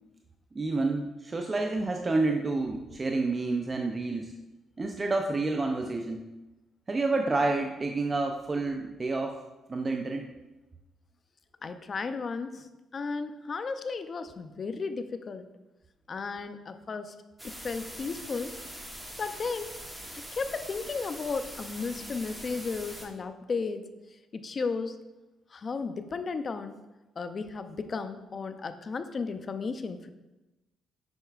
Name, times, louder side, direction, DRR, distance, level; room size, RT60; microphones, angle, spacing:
voice 1, 0.5-4.3 4.8-6.2 6.9-9.4 9.7-10.3, right 3 dB, 30° right, 3 dB, 0.5 m, -29 dB
voice 2, 11.6-15.5 16.1-17.2 17.4-18.5 19.2-19.7 20.3-23.9 24.3-25.0 25.5-26.8 27.2-30.1, left 4 dB, 40° left, 10 dB, 0.5 m, -34 dB
sound 1, 17.4-23.1, equal, 5° right, 1.0 m, -43 dB
7.9 x 5.5 x 2.4 m, 1.0 s
cardioid pair, 90°, 0 cm